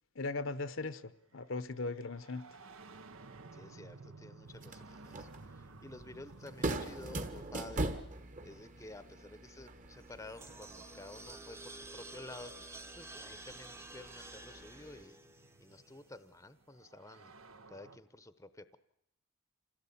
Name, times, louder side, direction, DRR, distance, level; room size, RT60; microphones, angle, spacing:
voice 1, 0.2-2.4, left 3 dB, 60° left, 0.9 m, -38 dB
sound 1, 1.2-11.8 13.1-13.2 14.2-18.0, right 3 dB, 75° right, 1.1 m, -56 dB
voice 2, 3.5-7.9 8.4-12.5 13.0-15.3 15.6-17.3 17.7-18.8, left 2 dB, 15° left, 0.8 m, -52 dB
sound 2, 4.5-15.0, right 2 dB, 35° right, 1.4 m, -43 dB
sound 3, 10.0-16.3, right 2 dB, 10° right, 0.9 m, -51 dB
26.5 x 16.5 x 8.6 m
head